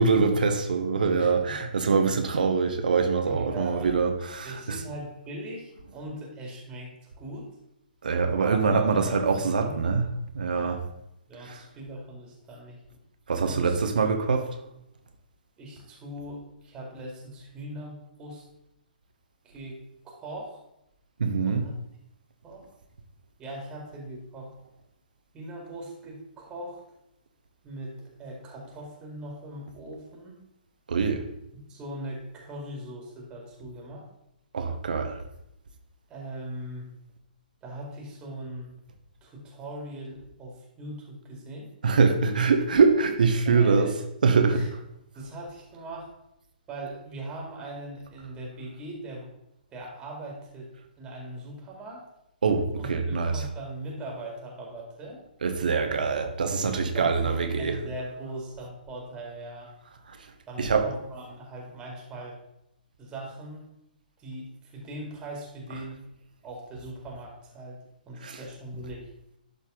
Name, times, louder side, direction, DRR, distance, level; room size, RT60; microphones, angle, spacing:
voice 1, 0.0-4.8 8.0-10.1 10.3-10.8 11.4-11.6 13.3-14.4 21.2-21.6 30.9-31.2 34.5-35.2 41.8-43.9 44.2-44.6 52.4-53.4 55.4-57.8 60.1-60.2 60.6-60.9 68.2-68.4, right 5 dB, 65° right, 6 dB, 1.1 m, -24 dB
voice 2, 1.2-1.5 3.2-3.9 4.4-7.5 8.4-9.9 10.5-10.8 11.3-12.8 13.5-14.1 15.6-18.4 19.4-19.8 20.2-20.6 21.4-21.7 22.4-22.7 23.4-24.5 25.3-26.8 27.6-30.3 31.7-34.1 36.1-36.9 37.6-38.7 39.2-41.7 43.5-43.9 44.4-44.7 45.1-46.1 46.7-49.3 49.7-50.7 51.0-52.1 52.8-55.2 57.0-59.7 60.5-62.4 63.0-63.7 64.2-66.0 66.4-67.8 68.1-69.1, right 1 dB, 15° right, -1 dB, 2.2 m, -40 dB
12.0 x 4.0 x 3.9 m, 0.83 s
figure-of-eight pair, 125°, 5 cm